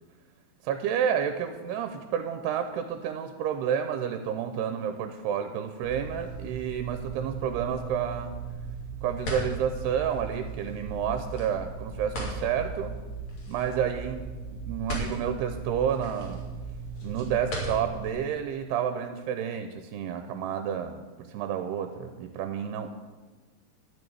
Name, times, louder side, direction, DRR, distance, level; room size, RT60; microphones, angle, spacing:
voice 1, 0.6-8.3 9.0-13.0 13.5-14.2 14.5-16.4 17.0-22.9, right 8 dB, 80° right, 8 dB, 2.6 m, -30 dB
sound 1, 5.8-18.1, right 3 dB, 45° left, 3.5 m, -37 dB
13.0 x 6.4 x 9.3 m, 1.3 s
omnidirectional pair, 4.9 m